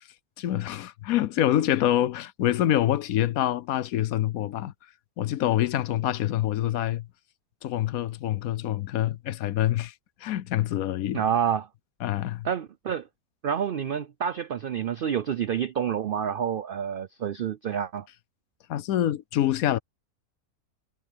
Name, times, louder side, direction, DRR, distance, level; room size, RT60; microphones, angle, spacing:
voice 1, 0.4-4.7 5.2-7.1 7.6-9.9 10.2-11.2 12.0-12.5 18.7-19.8, left 12 dB, 75° left, 1.1 m, -26 dB
voice 2, 11.1-11.7 12.4-13.1 13.4-18.1, right 8 dB, 80° right, 0.4 m, -28 dB
omnidirectional pair, 1.6 m